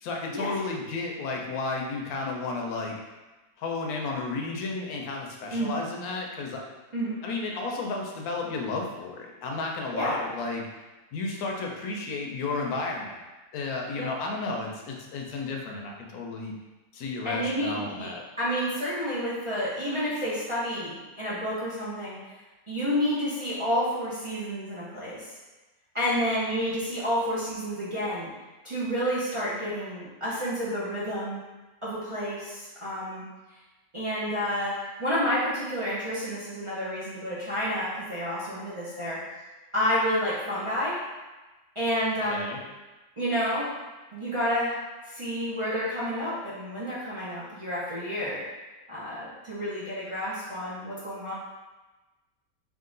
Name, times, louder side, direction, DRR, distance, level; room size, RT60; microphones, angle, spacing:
voice 1, 0.0-3.0 3.6-6.6 7.2-10.7 11.1-13.2 13.5-16.5 16.9-18.2 42.2-42.6, left 3 dB, 70° left, 0 dB, 1.1 m, -32 dB
voice 2, 17.2-18.1 18.4-22.2 22.7-25.3 25.9-28.3 28.6-31.4 31.8-33.2 33.9-39.2 39.7-41.0 41.8-42.5 43.2-43.7 44.1-44.8 45.1-48.4 48.9-51.3, equal, 50° right, -10 dB, 0.3 m, -30 dB
3.7 x 2.4 x 3.8 m, 1.1 s
omnidirectional pair, 1.7 m